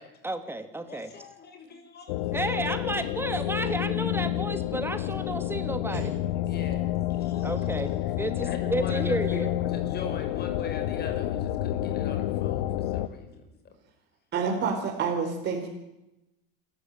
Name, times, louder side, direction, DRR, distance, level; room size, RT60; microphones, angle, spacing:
voice 1, 0.2-1.1 2.3-6.1 7.4-9.5, right 2 dB, 10° right, 9 dB, 2.6 m, -32 dB
voice 2, 0.9-2.5 6.3-7.7 8.4-13.5, left 5 dB, 35° left, 6 dB, 6.4 m, -41 dB
sound 1, 2.1-13.1, left 13 dB, 70° left, 1.5 m, -29 dB
voice 3, 14.3-15.7, right 5 dB, 40° right, 0 dB, 4.6 m, -28 dB
27.5 x 14.5 x 9.1 m, 0.95 s
supercardioid pair, 115°, 29 cm